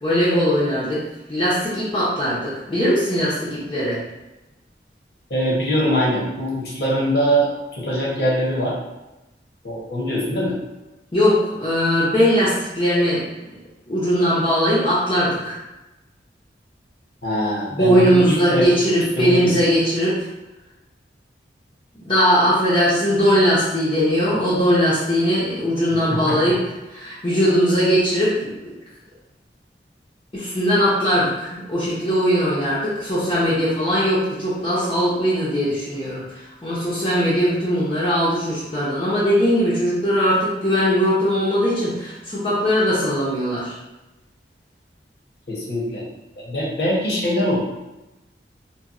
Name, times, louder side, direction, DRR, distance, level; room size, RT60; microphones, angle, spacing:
voice 1, 0.0-1.0 1.3-4.0 11.1-13.6 13.9-15.6 17.7-20.3 22.0-26.6 26.9-28.7 30.3-43.8, equal, 25° left, -10 dB, 0.6 m, -20 dB
voice 2, 5.3-8.7 9.6-10.6 17.2-18.7 19.2-19.7 26.1-26.4 45.5-46.0 46.4-47.6, equal, 60° left, -5 dB, 0.9 m, -22 dB
4.0 x 2.2 x 2.4 m, 1.0 s
head